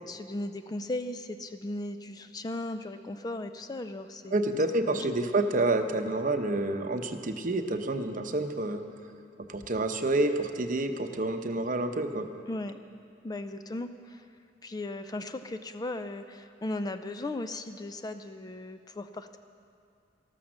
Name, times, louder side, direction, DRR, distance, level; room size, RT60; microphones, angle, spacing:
voice 1, 0.1-4.4 4.9-5.1 12.5-12.8 13.2-14.3 14.6-19.4, left 2 dB, 20° left, 9 dB, 0.4 m, -37 dB
voice 2, 4.3-8.8 9.5-12.3, right 2 dB, 45° right, 7 dB, 0.8 m, -28 dB
13.5 x 13.0 x 6.3 m, 2.4 s
head